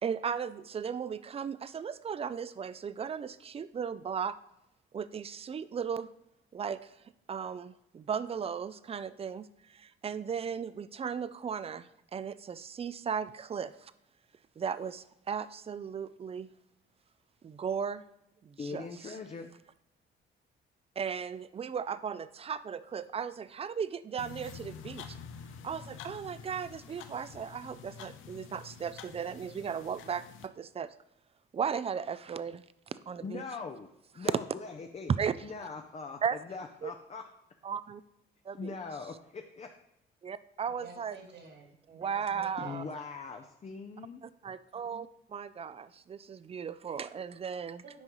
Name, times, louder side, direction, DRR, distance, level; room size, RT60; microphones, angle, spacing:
voice 1, 0.0-4.4 4.9-6.1 6.5-7.0 7.3-13.9 14.6-16.5 17.4-18.0 18.4-19.2 21.0-25.2 25.6-30.9 31.5-33.4 34.2-34.3 35.2-35.5 36.2-36.4 36.8-36.9 37.6-38.0 38.4-38.8 40.2-41.2 41.9-42.8 44.2-47.8, right 7 dB, 30° right, 15 dB, 0.4 m, -36 dB
voice 2, 18.6-19.5 33.2-33.9 34.1-35.1 35.4-37.2 38.6-39.7 42.6-44.2, left 4 dB, 35° left, 4 dB, 0.6 m, -41 dB
sound 1, 24.2-30.5, left 6 dB, 80° left, 0.6 m, -48 dB
voice 3, 40.7-42.9 47.8-48.0, right 4 dB, 60° right, 1 dB, 2.1 m, -52 dB
9.4 x 5.2 x 3.1 m, 0.83 s
cardioid pair, 90°, 20 cm